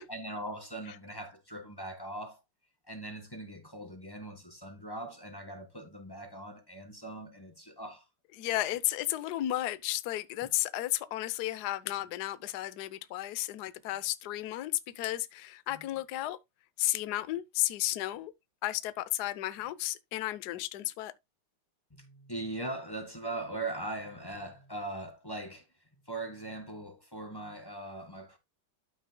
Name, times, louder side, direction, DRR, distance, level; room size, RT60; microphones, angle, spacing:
voice 1, 0.1-2.4 2.8-8.0 15.7-15.9 21.9-28.4, right 2 dB, 10° left, 1.5 m, -40 dB
voice 2, 8.4-16.4 16.8-18.3 18.6-21.1, left 15 dB, 60° left, 1.1 m, -33 dB
13.0 x 6.0 x 2.2 m
omnidirectional pair, 2.4 m